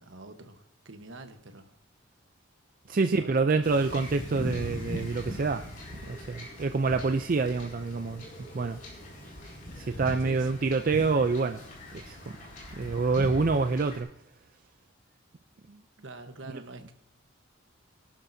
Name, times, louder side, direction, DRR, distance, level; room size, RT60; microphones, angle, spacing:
voice 1, 0.0-1.7 3.0-3.7 10.2-10.5 16.0-16.9, right 2 dB, 70° right, 1.1 m, -46 dB
voice 2, 2.9-5.6 6.1-8.2 8.5-8.8 9.8-11.6 12.0-12.4 12.7-14.1, right 4 dB, 40° right, 0.4 m, -27 dB
Wind / Ocean / Boat Water vehicle, 3.6-14.0, equal, 40° left, 4.6 m, -40 dB
23.0 x 12.0 x 2.7 m
head